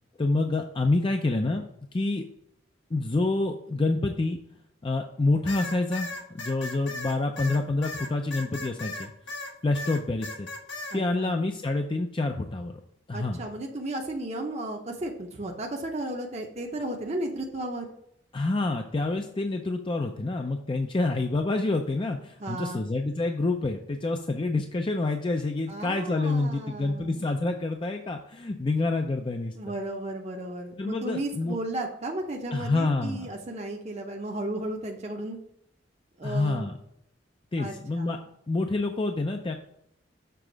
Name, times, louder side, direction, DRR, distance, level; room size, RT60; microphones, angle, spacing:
voice 1, 0.2-1.6 1.9-2.2 2.9-4.4 4.8-9.1 9.6-10.5 10.9-12.8 13.1-13.4 18.3-29.5 30.8-31.6 32.5-33.3 36.2-36.7 37.5-38.2 38.5-39.6, left 2 dB, 30° left, 4 dB, 0.5 m, -27 dB
sound 1, 5.5-9.5 9.7-11.0, left 2 dB, 80° left, 1.5 m, -36 dB
voice 2, 10.9-11.4 13.1-17.9 22.4-22.8 25.7-27.3 29.6-35.4 36.2-36.7 37.6-38.1, right 1 dB, 35° right, 1 dB, 0.8 m, -34 dB
6.9 x 3.6 x 6.1 m, 0.74 s
head